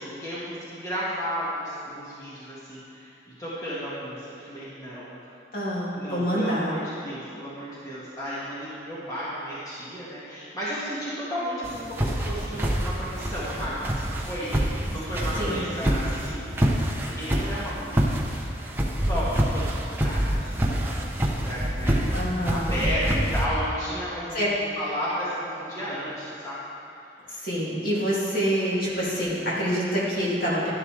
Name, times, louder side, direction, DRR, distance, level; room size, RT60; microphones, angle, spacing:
voice 1, 0.0-3.1 3.4-5.3 6.0-18.5 19.1-22.0 22.5-24.5 24.8-26.6, equal, 20° left, -10 dB, 1.8 m, -33 dB
voice 2, 5.5-6.7 15.4-15.9 22.1-22.9 24.3-24.5 27.3-30.7, equal, 50° left, -7 dB, 2.6 m, -27 dB
sound 1, 11.6-23.5, equal, 10° right, 0.8 m, -26 dB
12.0 x 11.0 x 3.3 m, 2.8 s
head